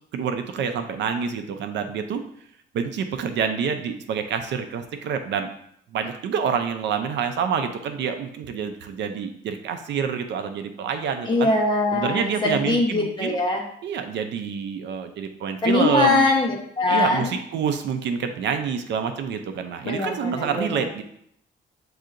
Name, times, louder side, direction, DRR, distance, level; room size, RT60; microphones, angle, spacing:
voice 1, 0.1-2.2 2.7-5.5 5.9-11.5 11.9-13.4 13.8-16.2 16.9-21.0, right 6 dB, 70° right, 7 dB, 0.5 m, -27 dB
voice 2, 11.3-13.6 15.6-17.3 19.9-20.9, left 2 dB, 25° left, -1 dB, 1.0 m, -22 dB
7.5 x 2.8 x 2.5 m, 0.70 s
cardioid pair, 135°, 19 cm